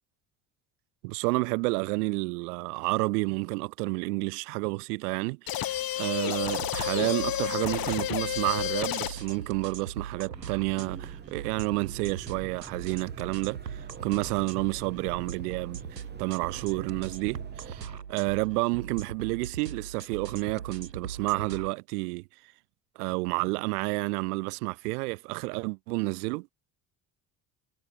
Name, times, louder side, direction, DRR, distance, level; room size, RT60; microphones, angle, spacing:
voice 1, 1.0-22.2 23.0-26.5, right 26 dB, 65° right, 1.7 m, -30 dB
sound 1, 5.5-9.4, left 12 dB, 45° left, 2.3 m, -31 dB
sound 2, 6.4-21.7, right 7 dB, 80° right, 3.6 m, -41 dB
sound 3, 10.3-18.0, right 5 dB, 20° right, 2.2 m, -47 dB
figure-of-eight pair, 50°, 49 cm